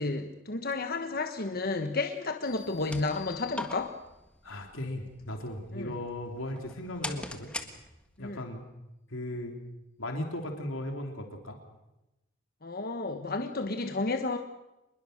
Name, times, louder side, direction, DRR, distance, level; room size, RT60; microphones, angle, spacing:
voice 1, 0.0-3.9 5.7-6.0 8.2-8.4 12.6-14.4, left 3 dB, 45° left, 6 dB, 1.2 m, -32 dB
sound 1, 2.4-4.2, left 10 dB, 90° left, 6.5 m, -51 dB
sound 2, 2.5-8.3, left 1 dB, 5° left, 1.5 m, -43 dB
voice 2, 4.4-7.5 8.2-8.6 9.1-9.6 10.0-11.6, left 1 dB, 70° left, 3 dB, 3.1 m, -37 dB
25.5 x 21.5 x 6.6 m, 0.95 s
head